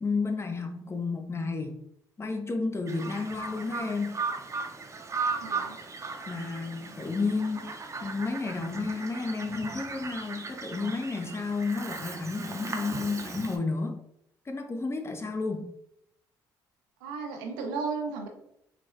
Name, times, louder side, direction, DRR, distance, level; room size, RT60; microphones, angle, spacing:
voice 1, 0.0-1.8 2.2-4.1 6.3-14.0 14.5-15.7, left 3 dB, 25° left, 6 dB, 0.5 m, -31 dB
Bird vocalization bird call bird song, 2.9-13.6, right 4 dB, 30° right, 0.6 m, -37 dB
voice 2, 5.4-5.8 17.0-18.3, right 4 dB, 85° right, 3 dB, 0.5 m, -34 dB
4.0 x 2.0 x 2.3 m, 0.77 s
hypercardioid pair, 55°, 10 cm